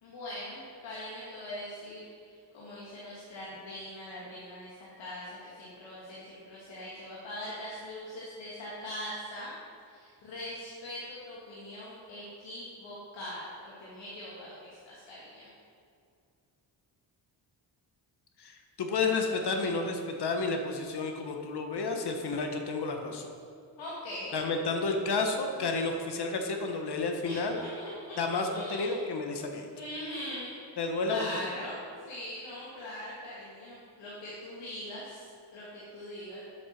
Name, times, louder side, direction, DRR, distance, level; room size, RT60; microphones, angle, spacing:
voice 1, 0.0-9.5 9.8-15.5 23.8-24.4 27.2-29.0 29.7-30.5 31.0-36.4, left 1 dB, 85° left, -7 dB, 2.2 m, -42 dB
voice 2, 18.4-23.3 24.3-27.6 28.2-29.7 30.8-31.4, left 3 dB, 65° left, 4 dB, 1.3 m, -31 dB
7.9 x 7.8 x 5.9 m, 2.3 s
cardioid pair, 85°, 43 cm